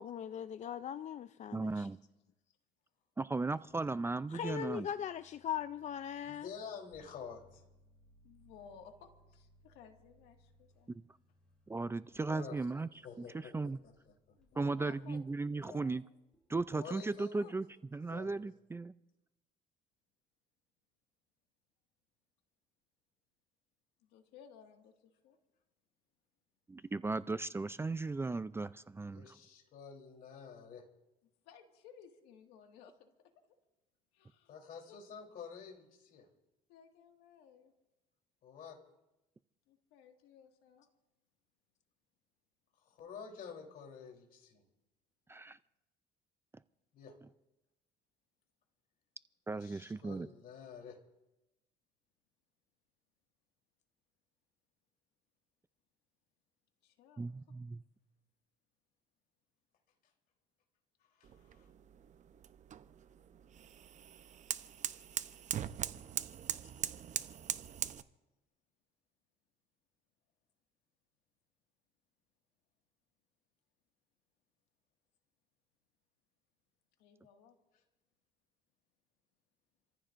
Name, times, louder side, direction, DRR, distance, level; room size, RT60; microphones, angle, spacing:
voice 1, 0.0-1.9 4.3-6.5, left 9 dB, 45° left, 12 dB, 0.5 m, -40 dB
voice 2, 1.5-2.0 3.2-4.9 10.9-11.0 11.7-12.9 13.2-13.8 14.6-16.0 16.5-17.6 17.9-18.9 26.7-29.2 45.3-45.6 49.5-50.3 57.2-57.8, right 3 dB, 15° right, 14 dB, 0.4 m, -36 dB
sound 1, 3.7-15.4 16.3-16.7, equal, 5° left, 6.0 m, -69 dB
voice 3, 6.2-7.6 12.1-14.7 16.7-17.5 18.0-18.4 29.1-30.8 34.5-36.3 38.4-38.8 42.8-44.6 46.9-47.2 49.5-51.0 61.1-61.7, left 6 dB, 65° left, 1 dB, 3.6 m, -50 dB
voice 4, 8.2-10.9 14.4-15.2 15.6-16.0 17.3-17.5 24.0-25.4 31.4-33.1 33.4-33.6 34.1-34.6 34.9-35.0 36.7-37.7 39.7-40.9 56.8-57.3 77.0-77.6, left 7 dB, 90° left, 4 dB, 2.0 m, -58 dB
sound 2, 61.2-68.0, right 9 dB, 50° right, 0.8 m, -41 dB
29.5 x 14.5 x 2.6 m, 0.98 s
cardioid pair, 95°, 16 cm